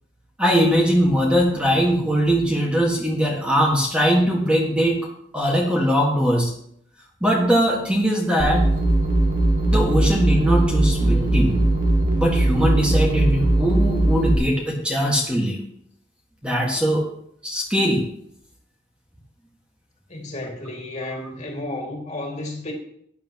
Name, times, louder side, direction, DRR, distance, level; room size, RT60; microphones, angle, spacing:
voice 1, 0.4-5.0 5.3-6.5 7.2-8.6 9.7-11.6 12.2-15.6 16.4-17.0 17.4-18.1, equal, 5° right, -2 dB, 1.7 m, -20 dB
sound 1, 8.4-14.3, right 1 dB, 50° right, 2.0 m, -19 dB
voice 2, 20.1-22.7, left 2 dB, 40° left, 1 dB, 2.3 m, -32 dB
14.0 x 9.9 x 3.0 m, 0.70 s
head